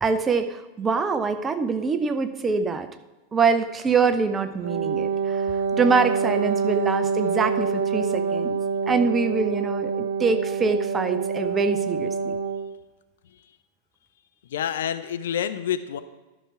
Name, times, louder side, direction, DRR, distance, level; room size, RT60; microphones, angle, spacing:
voice 1, 0.0-2.9 3.3-5.4 5.7-8.6 8.9-12.4, right 4 dB, 20° right, 9 dB, 0.7 m, -24 dB
Wind instrument woodwind instrument, 4.6-12.8, right 5 dB, 65° right, 0.5 m, -26 dB
voice 2, 13.2-13.6 14.4-16.0, left 9 dB, 60° left, 11 dB, 0.5 m, -29 dB
12.0 x 6.0 x 4.6 m, 1.1 s
figure-of-eight pair, 90°, 0 cm